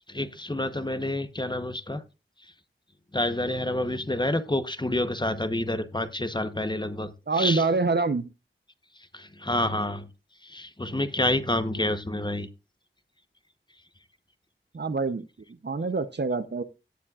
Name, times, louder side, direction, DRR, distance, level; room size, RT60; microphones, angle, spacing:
voice 1, 0.1-2.0 3.1-7.6 9.1-10.1 10.4-12.5, left 1 dB, 20° left, 11 dB, 0.9 m, -28 dB
voice 2, 7.3-8.3 14.7-15.2 15.6-16.6, right 3 dB, 55° right, 12 dB, 0.8 m, -25 dB
17.5 x 7.3 x 2.4 m, 0.29 s
wide cardioid pair, 60°, 21 cm